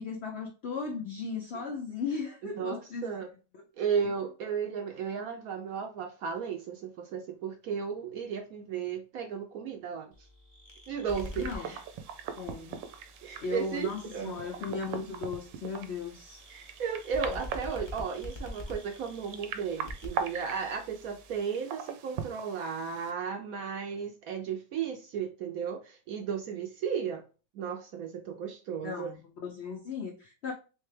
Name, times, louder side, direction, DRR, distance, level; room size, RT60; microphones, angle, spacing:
voice 1, 0.0-3.1 3.5-3.6 11.4-11.7 12.4-12.8 13.4-16.4 28.8-30.5, left 4 dB, 75° left, 0.6 m, -37 dB
voice 2, 2.5-3.3 3.8-10.1 10.9-11.8 13.2-14.4 16.5-27.2 27.5-29.1, right 6 dB, 70° right, 0.9 m, -34 dB
sound 1, 10.1-21.4, left 1 dB, 35° left, 0.4 m, -46 dB
sound 2, 11.1-23.1, right 7 dB, 90° right, 1.2 m, -41 dB
3.4 x 3.2 x 3.2 m
omnidirectional pair, 1.8 m